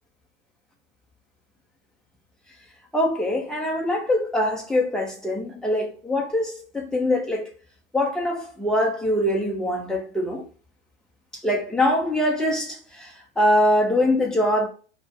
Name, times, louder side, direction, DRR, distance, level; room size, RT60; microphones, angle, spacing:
voice 1, 2.9-7.5 7.9-10.4 11.4-14.7, left 1 dB, ahead, 1.0 m, -23 dB
4.5 x 2.4 x 4.7 m
figure-of-eight pair, 100°, 33 cm